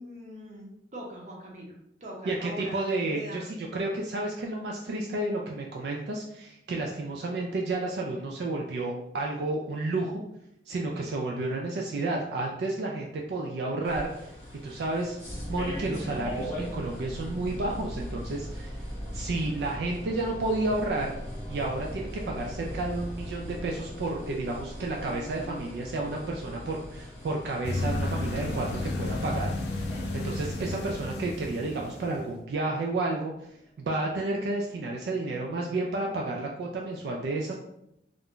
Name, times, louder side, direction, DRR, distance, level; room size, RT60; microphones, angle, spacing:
voice 1, 0.0-1.7 2.0-3.5, equal, 40° right, -2 dB, 0.7 m, -42 dB
voice 2, 2.3-10.2 10.7-14.3 14.6-15.2 15.5-18.8 19.1-21.1 21.5-29.5 30.1-33.5 33.8-37.5, right 2 dB, 70° right, 0 dB, 0.3 m, -31 dB
sound 1, 13.8-30.4, equal, 20° left, 0.9 m, -45 dB
sound 2, 15.2-33.6, equal, 5° left, 0.5 m, -41 dB
sound 3, 27.6-32.2, left 2 dB, 70° left, 0.4 m, -32 dB
2.4 x 2.1 x 3.5 m, 0.82 s
head